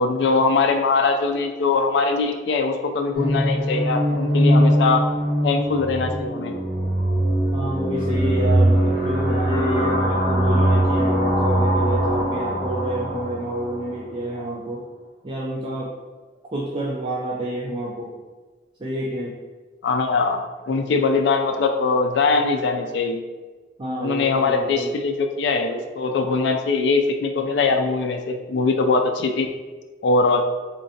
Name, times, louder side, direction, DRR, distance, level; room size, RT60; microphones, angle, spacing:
voice 1, 0.0-5.0 5.4-6.6 19.8-23.2 24.0-29.5 30.0-30.4, left 4 dB, 75° left, 5 dB, 0.4 m, -21 dB
sound 1, 3.1-13.9, right 1 dB, 45° left, 1.3 m, -21 dB
voice 2, 7.5-14.9 15.2-15.9 16.5-18.1 18.8-19.4 23.8-24.9, equal, 30° right, -5 dB, 0.4 m, -28 dB
3.8 x 3.2 x 2.7 m, 1.4 s
head